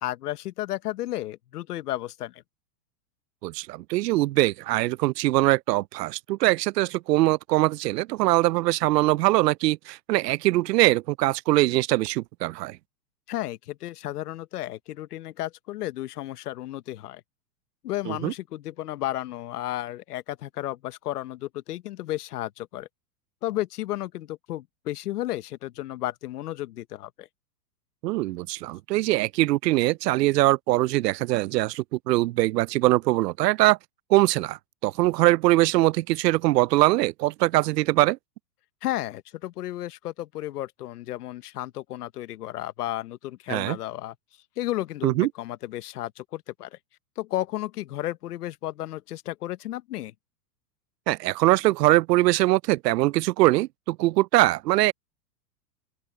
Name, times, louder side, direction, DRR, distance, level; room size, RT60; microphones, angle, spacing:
voice 1, 0.0-2.4 13.3-17.2 17.8-22.9 23.4-27.3 38.8-44.1 44.6-46.8 47.2-50.1, left 14 dB, 70° left, 1.4 m, -33 dB
voice 2, 3.4-12.8 18.1-18.3 28.0-33.8 34.1-38.2 43.5-43.8 45.0-45.3 51.1-54.9, right 18 dB, 85° right, 0.6 m, -22 dB
open air
supercardioid pair, 180°, 48 cm